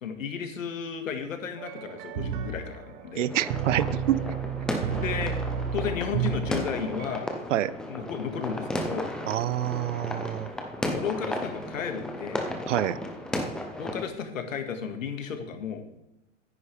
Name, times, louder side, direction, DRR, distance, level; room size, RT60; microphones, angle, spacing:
voice 1, 0.0-3.3 5.0-5.4 5.7-7.3 7.9-9.1 10.9-12.4 13.8-15.8, left 7 dB, 90° left, 6 dB, 2.0 m, -33 dB
sound 1, 1.6-7.2, right 7 dB, 45° right, 1.1 m, -32 dB
voice 2, 3.2-4.2 7.5-7.7 9.3-10.5 12.7-13.0, right 12 dB, 70° right, 17 dB, 0.7 m, -27 dB
sound 2, 3.3-14.1, left 1 dB, ahead, 0.4 m, -34 dB
15.0 x 9.8 x 3.4 m, 0.89 s
hypercardioid pair, 145°, 39 cm